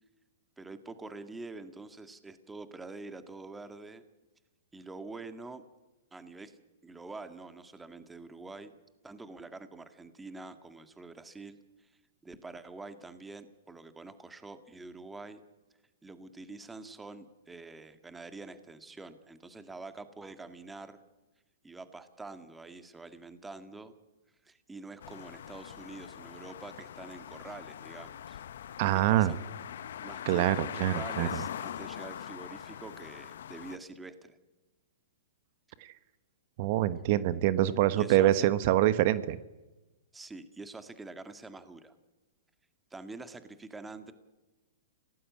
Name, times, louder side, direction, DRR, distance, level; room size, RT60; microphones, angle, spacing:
voice 1, 0.6-4.0 4.7-5.6 6.1-6.6 6.8-8.8 9.0-11.9 12.2-15.4 16.0-21.0 21.6-23.9 24.4-28.4 28.9-29.5 30.0-34.4 37.9-38.5 40.1-41.9 42.9-44.1, right 3 dB, 10° right, 10 dB, 1.9 m, -46 dB
sound 1, 25.0-33.8, left 10 dB, 70° left, 1.1 m, -42 dB
voice 2, 28.8-29.3 30.3-31.4 35.8-35.9 36.6-39.4, right 13 dB, 50° right, 15 dB, 1.2 m, -25 dB
29.0 x 18.5 x 8.6 m, 1.1 s
hypercardioid pair, 135°, 0 cm